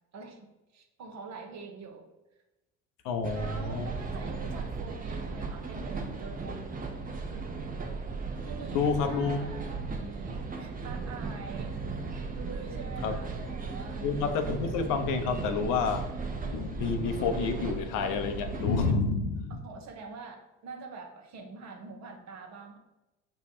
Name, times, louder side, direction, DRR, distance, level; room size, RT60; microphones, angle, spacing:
voice 1, 0.1-0.5 0.7-2.1 3.3-6.6 8.4-11.8 12.3-14.1 19.6-22.8, right 4 dB, 50° right, 5 dB, 0.9 m, -45 dB
voice 2, 3.0-3.9 8.7-9.4 13.0-13.2 14.0-16.1 16.4-19.6, left 5 dB, 60° left, 7 dB, 0.7 m, -29 dB
sound 1, 3.2-18.9, right 4 dB, 25° right, 0.9 m, -36 dB
5.4 x 2.3 x 4.3 m, 1.0 s
hypercardioid pair, 60°, 36 cm